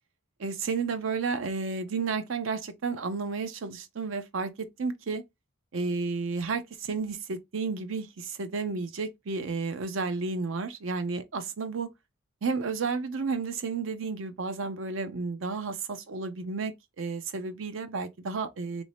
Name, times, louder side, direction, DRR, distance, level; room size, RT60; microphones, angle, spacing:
voice 1, 0.4-5.2 5.7-11.9 12.4-18.8, right 4 dB, 80° right, 0.5 m, -32 dB
3.1 x 2.6 x 3.2 m
head